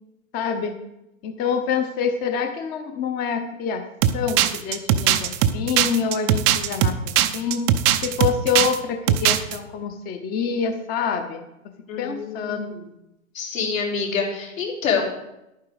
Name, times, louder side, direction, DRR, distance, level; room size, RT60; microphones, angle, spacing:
voice 1, 0.3-0.7 1.2-3.8 4.1-7.0 7.3-7.7 8.0-11.4 12.0-12.7, left 6 dB, 20° left, 7 dB, 0.7 m, -26 dB
sound 1, 4.0-8.8 9.1-9.6, right 11 dB, 20° right, 0.4 m, -19 dB
voice 2, 11.9-12.6 13.4-15.0, left 6 dB, 70° left, -1 dB, 3.7 m, -26 dB
11.0 x 9.2 x 4.8 m, 0.90 s
hypercardioid pair, 125°, 41 cm